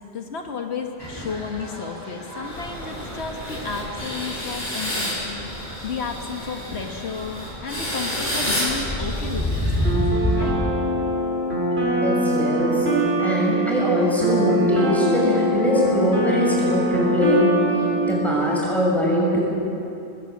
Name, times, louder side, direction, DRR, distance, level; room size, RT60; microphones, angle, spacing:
voice 1, 0.1-5.5 5.8-10.6, left 5 dB, 80° left, 3 dB, 1.6 m, -33 dB
sound 1, 1.0-10.5, equal, 20° left, 6.3 m, -31 dB
sound 2, 2.4-10.4, equal, 45° left, 4.9 m, -30 dB
sound 3, 9.8-18.6, right 1 dB, 75° right, 5.9 m, -23 dB
voice 2, 12.0-17.5 18.0-19.4, equal, ahead, -4 dB, 6.3 m, -22 dB
20.0 x 16.5 x 8.4 m, 2.8 s
omnidirectional pair, 1.1 m